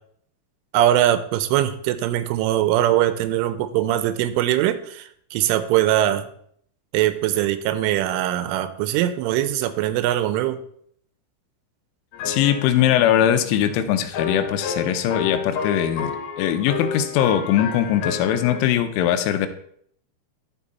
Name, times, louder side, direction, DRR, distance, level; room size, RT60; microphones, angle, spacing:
voice 1, 0.7-6.3 6.9-10.6, right 12 dB, 90° right, 12 dB, 3.2 m, -21 dB
sound 1, 12.1-18.7, left 6 dB, 70° left, 2.7 m, -31 dB
voice 2, 12.3-16.1 16.4-19.5, left 10 dB, 85° left, 9 dB, 3.1 m, -21 dB
14.0 x 4.7 x 4.1 m, 0.65 s
omnidirectional pair, 5.5 m